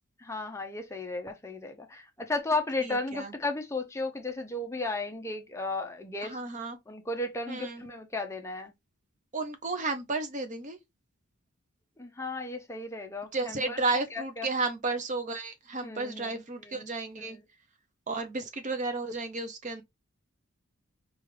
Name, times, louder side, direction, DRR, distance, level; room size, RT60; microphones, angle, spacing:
voice 1, 0.2-6.4 6.9-8.7 12.0-13.8 14.1-14.5 15.8-16.9, left 2 dB, 15° left, 0.5 m, -34 dB
voice 2, 2.8-3.3 6.2-6.8 7.5-7.9 9.3-10.8 13.3-17.4 18.1-19.8, right 3 dB, 35° right, 0.5 m, -33 dB
4.9 x 2.4 x 3.2 m
head